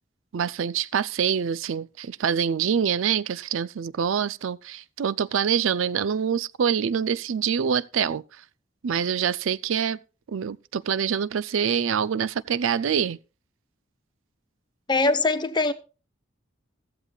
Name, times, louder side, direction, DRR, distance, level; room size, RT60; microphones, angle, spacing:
voice 1, 0.3-8.2 8.8-10.0 10.3-13.2, right 7 dB, 85° right, 0.4 m, -25 dB
voice 2, 14.9-15.7, left 3 dB, 25° left, 0.9 m, -22 dB
14.5 x 14.0 x 2.3 m
head